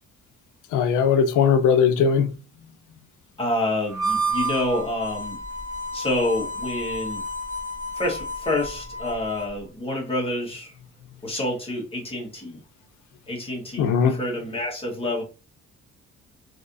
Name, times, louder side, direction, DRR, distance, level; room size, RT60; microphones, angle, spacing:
voice 1, 0.7-2.3 13.8-14.2, left 6 dB, 85° left, 0.6 m, -19 dB
voice 2, 3.4-5.4 5.9-7.2 7.9-10.7 11.2-12.6 13.3-15.2, left 1 dB, 20° left, 1.6 m, -28 dB
Harmonica, 3.9-9.6, right 1 dB, 10° right, 1.8 m, -30 dB
3.2 x 2.9 x 2.6 m
cardioid pair, 90°, 30 cm